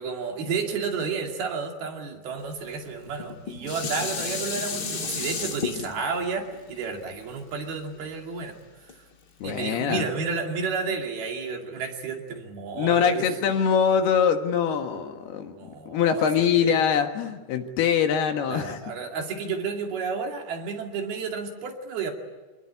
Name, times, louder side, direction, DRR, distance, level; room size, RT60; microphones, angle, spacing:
voice 1, 0.0-8.6 9.4-13.3 15.5-16.8 18.5-22.1, right 5 dB, 60° right, 3 dB, 4.2 m, -31 dB
Dishes pots and pans, 3.1-8.3 8.9-9.0, left 5 dB, 50° left, 1.2 m, -33 dB
voice 2, 9.4-10.0 12.8-18.8, left 7 dB, 65° left, 6 dB, 3.3 m, -23 dB
26.0 x 20.5 x 9.9 m, 1.3 s
omnidirectional pair, 5.1 m